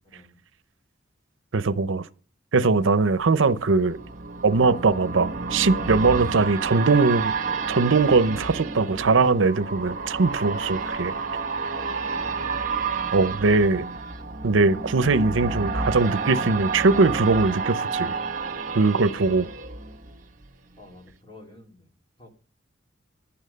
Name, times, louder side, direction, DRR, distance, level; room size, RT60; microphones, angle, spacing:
voice 1, 1.5-2.0 2.5-4.0 4.4-11.1 13.1-13.9 14.4-18.1 18.7-19.5, right 3 dB, 80° right, 0.7 m, -21 dB
sound 1, 2.8-20.5 20.9-21.0, right 4 dB, 40° right, 1.7 m, -30 dB
voice 2, 10.5-11.5 11.8-13.4 18.5-18.6 20.8-21.9 22.2-22.3, left 1 dB, 25° left, 2.4 m, -51 dB
11.5 x 8.8 x 6.6 m
head